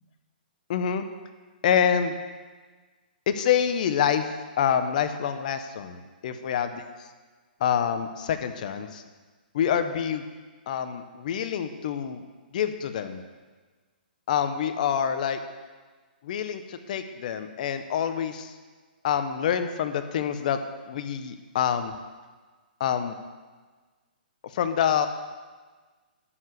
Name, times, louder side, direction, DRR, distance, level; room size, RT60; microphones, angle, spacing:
voice 1, 0.7-1.1 1.6-2.2 3.3-4.3 4.6-6.8 7.6-9.0 9.5-10.2 10.7-12.2 12.5-13.2 14.3-15.4 16.2-18.5 19.0-20.6 20.9-21.9 22.8-23.1 24.5-25.1, left 8 dB, 50° left, 9 dB, 0.9 m, -26 dB
11.0 x 4.8 x 8.1 m, 1.4 s
hypercardioid pair, 150°, 5 cm